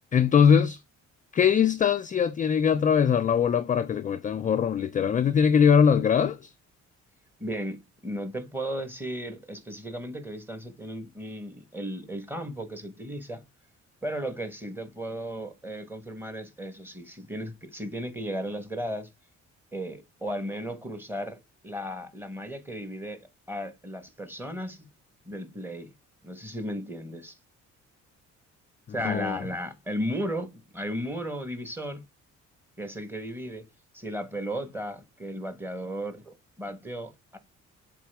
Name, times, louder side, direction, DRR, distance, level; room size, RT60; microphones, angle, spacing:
voice 1, 0.1-0.8 1.3-6.5 29.0-29.4, left 7 dB, 25° left, 0.3 m, -22 dB
voice 2, 7.4-13.4 14.0-19.1 19.7-21.4 21.6-24.9 25.2-25.9 26.2-27.4 28.9-32.0 32.8-33.7 33.9-37.4, equal, 5° right, 1.4 m, -35 dB
7.5 x 3.7 x 3.5 m
cardioid pair, 115°, 29 cm